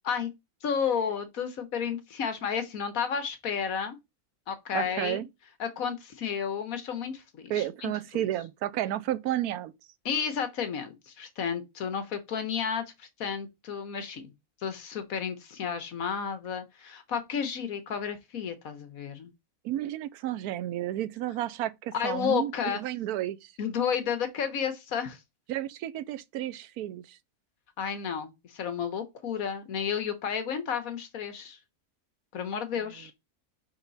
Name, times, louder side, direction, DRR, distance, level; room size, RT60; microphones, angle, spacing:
voice 1, 0.6-4.0 4.5-5.2 5.6-8.2 10.0-14.3 14.6-19.3 21.9-22.8 23.6-25.2 27.8-31.6 32.3-33.1, left 7 dB, 70° left, 1.4 m, -32 dB
voice 2, 4.7-5.3 7.5-9.7 19.6-23.5 25.5-27.2, right 13 dB, 85° right, 1.1 m, -32 dB
5.5 x 4.4 x 4.0 m
omnidirectional pair, 1.6 m